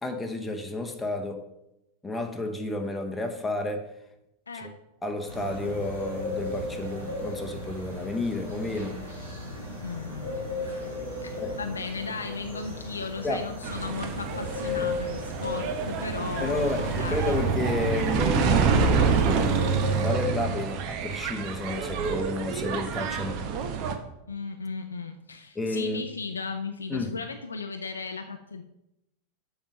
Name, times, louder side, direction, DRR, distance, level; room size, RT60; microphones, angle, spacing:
voice 1, 0.0-1.5 2.0-3.9 4.5-4.7 5.0-9.0 11.4-11.5 13.2-13.5 14.6-14.9 16.4-23.4 25.5-26.0 26.9-27.2, left 2 dB, 10° left, 3 dB, 1.0 m, -31 dB
voice 2, 4.5-4.8 9.8-10.7 11.2-17.4 24.3-28.6, left 4 dB, 75° left, 5 dB, 0.5 m, -36 dB
sound 1, 5.3-20.1, left 2 dB, 80° right, 3.2 m, -36 dB
sound 2, 13.6-23.9, right 6 dB, 40° right, 1.0 m, -27 dB
7.2 x 6.2 x 5.3 m, 0.88 s
figure-of-eight pair, 90°, 0 cm